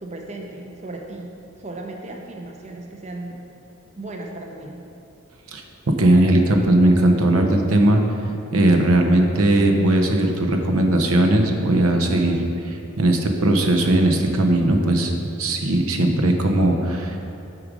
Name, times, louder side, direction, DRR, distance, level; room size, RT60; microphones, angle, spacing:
voice 1, 0.0-1.3 1.6-3.4 4.0-4.8, right 2 dB, 30° right, 1 dB, 0.5 m, -35 dB
voice 2, 5.5-8.0 8.5-15.1 15.4-17.2, right 1 dB, 85° right, 4 dB, 0.8 m, -18 dB
8.6 x 4.8 x 5.1 m, 2.7 s
head